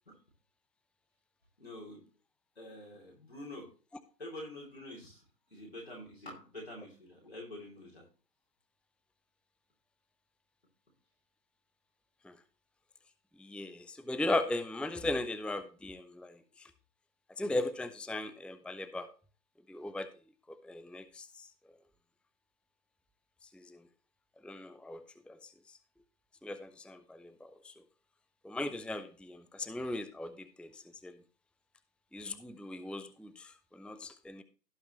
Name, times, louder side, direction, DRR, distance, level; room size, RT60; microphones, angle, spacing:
voice 1, 1.6-2.0 2.6-3.7 4.2-5.2 5.5-8.0, left 1 dB, 40° left, -3 dB, 2.8 m, -46 dB
voice 2, 13.4-16.7 17.4-19.1 19.7-20.1 20.5-21.3 23.5-23.8 24.4-25.0 25.3-25.5 26.4-27.7 28.4-31.1 32.1-34.4, left 2 dB, ahead, 13 dB, 0.4 m, -38 dB
17.0 x 5.7 x 2.9 m, 0.36 s
figure-of-eight pair, 180°, 50 cm